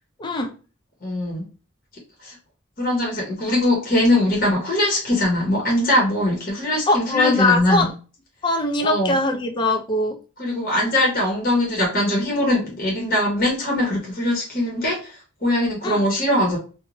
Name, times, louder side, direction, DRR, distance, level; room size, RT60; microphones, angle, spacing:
voice 1, 0.2-0.5 6.9-7.9 8.4-10.2 15.8-16.0, left 2 dB, 20° left, 4 dB, 0.3 m, -21 dB
voice 2, 1.0-1.4 2.2-2.4 2.8-7.9 8.8-9.2 10.4-16.6, left 1 dB, 45° left, -2 dB, 0.8 m, -21 dB
2.5 x 2.1 x 2.9 m, 0.35 s
head